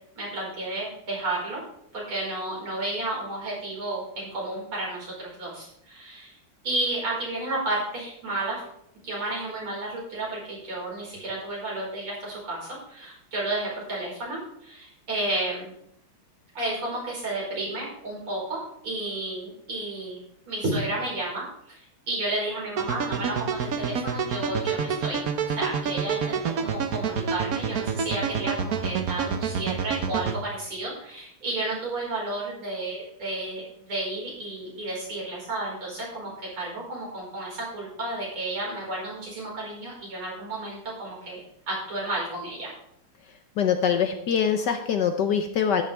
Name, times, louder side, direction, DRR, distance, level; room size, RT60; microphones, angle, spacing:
voice 1, 0.2-1.6 1.9-6.3 6.6-8.6 9.0-15.7 16.5-20.2 20.5-21.8 22.1-25.2 25.5-42.7, right 2 dB, 70° right, -5 dB, 5.8 m, -32 dB
sound 1, 22.8-30.4, right 6 dB, 55° right, 1.1 m, -28 dB
voice 2, 43.6-45.8, left 7 dB, 65° left, 7 dB, 1.2 m, -23 dB
13.0 x 10.0 x 3.5 m, 0.72 s
omnidirectional pair, 2.4 m